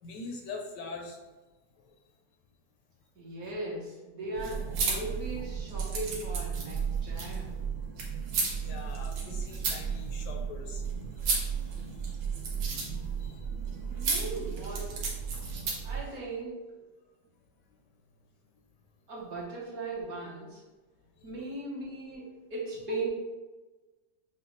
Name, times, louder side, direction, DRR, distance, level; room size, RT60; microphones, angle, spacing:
voice 1, 0.0-1.2 8.6-10.8 11.2-11.3 13.2-13.4 13.8-14.2 15.4-15.7 16.0-16.2, left 3 dB, 75° left, 1 dB, 1.1 m, -43 dB
voice 2, 3.1-7.6 13.9-15.0 15.8-16.6 19.1-20.6 21.2-23.1, right 2 dB, 55° right, -5 dB, 1.3 m, -38 dB
sound 1, 4.3-16.0, right 5 dB, 75° right, 1.5 m, -33 dB
6.3 x 2.3 x 3.0 m, 1.2 s
omnidirectional pair, 2.0 m